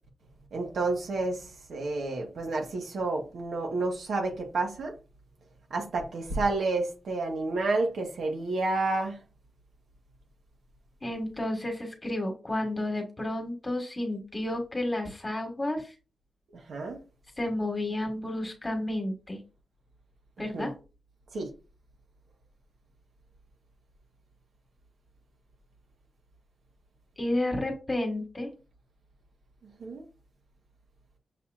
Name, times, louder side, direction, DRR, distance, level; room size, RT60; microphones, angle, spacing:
voice 1, 0.5-4.9 5.7-9.2 16.5-17.0 20.5-20.7 21.3-21.5 29.8-30.0, right 3 dB, 85° right, 1.4 m, -30 dB
voice 2, 11.0-15.9 17.4-19.4 20.4-20.7 27.2-28.5, left 1 dB, 20° left, 1.4 m, -31 dB
6.6 x 2.9 x 2.5 m
wide cardioid pair, 145°, 0 cm